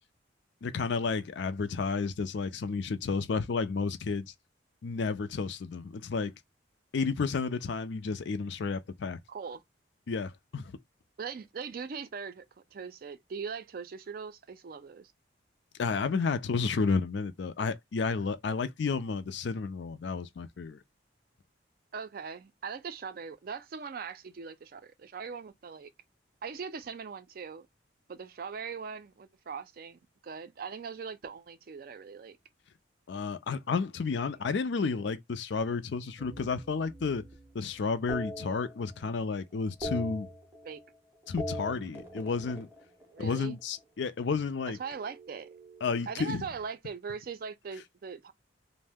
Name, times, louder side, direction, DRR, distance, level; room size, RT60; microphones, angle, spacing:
voice 1, 0.6-4.3 4.8-6.3 6.9-9.2 10.1-10.7 15.8-20.8 33.1-37.2 37.5-40.3 41.3-42.7 43.2-44.8 45.8-46.4, left 4 dB, 65° left, 0.4 m, -31 dB
voice 2, 9.3-9.6 11.2-15.1 21.9-25.9 26.4-27.7 28.1-32.4 40.6-40.8 43.1-43.6 44.8-45.5 46.1-48.3, right 5 dB, 50° right, 0.3 m, -40 dB
sound 1, 36.2-37.5 38.1-39.2 39.5-41.0 41.2-43.6 44.8-46.5, equal, 10° right, 0.6 m, -42 dB
2.6 x 2.0 x 3.4 m
head